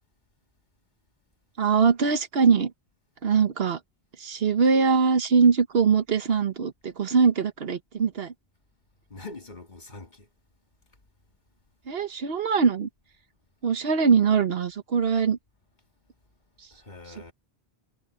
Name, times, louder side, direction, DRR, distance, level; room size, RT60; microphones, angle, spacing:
voice 1, 1.6-2.7 3.2-3.8 4.2-8.3 11.9-12.9 13.6-15.4, right 5 dB, 65° right, 1.2 m, -22 dB
voice 2, 9.1-10.3 16.7-17.3, left 2 dB, 45° left, 2.3 m, -43 dB
omnidirectional pair, 1.1 m